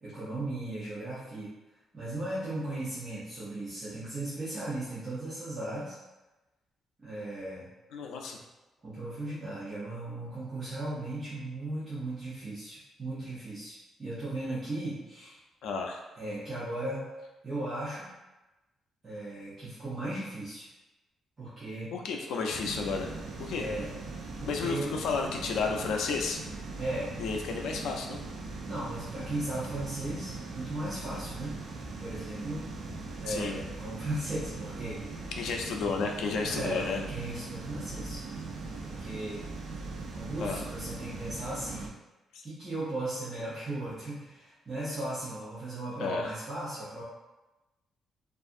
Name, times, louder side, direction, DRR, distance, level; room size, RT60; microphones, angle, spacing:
voice 1, 0.0-1.5 1.9-6.0 7.0-7.7 8.8-15.4 16.2-17.1 17.4-18.1 19.0-20.7 21.4-21.9 23.6-23.9 24.4-24.9 26.8-27.1 28.6-31.5 32.0-32.6 33.2-35.2 36.5-38.2 38.8-39.4 40.1-41.9 42.4-47.0, right 1 dB, 20° right, -12 dB, 0.7 m, -36 dB
voice 2, 7.9-8.4 15.6-16.0 21.9-23.1 23.4-23.7 24.5-26.4 27.2-28.2 33.3-33.6 35.4-37.0 40.4-40.6 46.0-46.3, left 4 dB, 85° left, 2 dB, 0.4 m, -32 dB
sound 1, 22.5-41.9, right 3 dB, 55° right, 0.4 m, -40 dB
2.6 x 2.4 x 2.5 m, 1.1 s
cardioid pair, 180°, 0 cm